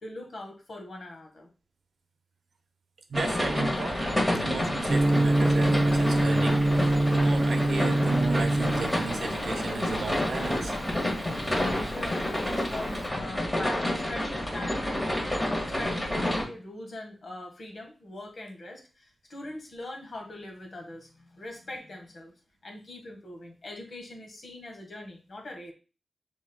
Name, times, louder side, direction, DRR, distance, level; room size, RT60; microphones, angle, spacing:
voice 1, 0.0-1.5 11.9-14.9 15.2-22.3 22.6-25.7, left 1 dB, 60° left, 2 dB, 1.4 m, -42 dB
sound 1, 3.1-16.4, left 1 dB, 15° left, 1.6 m, -29 dB
voice 2, 3.1-10.7, right 4 dB, 80° right, 6 dB, 0.7 m, -34 dB
Gong, 4.9-13.0, right 1 dB, 35° right, 0.4 m, -26 dB
6.2 x 3.7 x 2.2 m, 0.33 s
wide cardioid pair, 85°, 0 cm